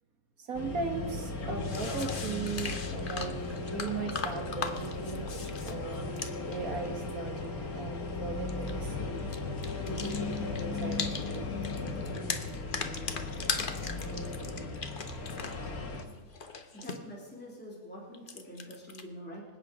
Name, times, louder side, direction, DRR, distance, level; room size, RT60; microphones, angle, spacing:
voice 1, 0.4-6.1 6.5-9.2 9.8-12.0, right 4 dB, 60° right, 5 dB, 2.1 m, -38 dB
sound 1, 0.5-16.0, left 3 dB, 65° left, 2.2 m, -37 dB
sound 2, 1.2-1.3 1.6-7.1 8.5-8.9 9.2-11.4 11.6-15.7 16.0-17.0 18.1-19.0, left 4 dB, 35° left, 1.1 m, -39 dB
Brass instrument, 2.9-11.6, left 3 dB, 20° right, 1.8 m, -46 dB
voice 2, 16.7-19.6, equal, 5° left, -4 dB, 3.0 m, -46 dB
26.0 x 8.7 x 5.1 m, 1.3 s
omnidirectional pair, 1.7 m